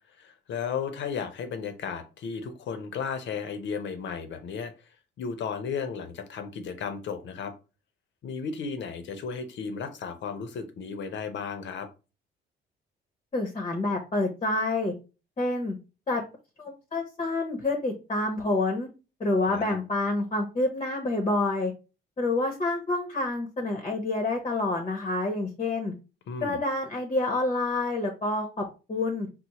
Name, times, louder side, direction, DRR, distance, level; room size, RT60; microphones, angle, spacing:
voice 1, 0.2-4.7 5.2-7.5 8.2-11.9 19.5-19.7 26.3-26.6, left 6 dB, 65° left, 8 dB, 0.7 m, -34 dB
voice 2, 13.3-14.9 15.4-15.8 16.1-16.2 16.6-18.9 19.2-21.7 22.2-25.9 26.4-29.3, left 2 dB, 30° left, 3 dB, 0.7 m, -28 dB
4.2 x 2.0 x 2.9 m, 0.31 s
cardioid pair, 90°, 20 cm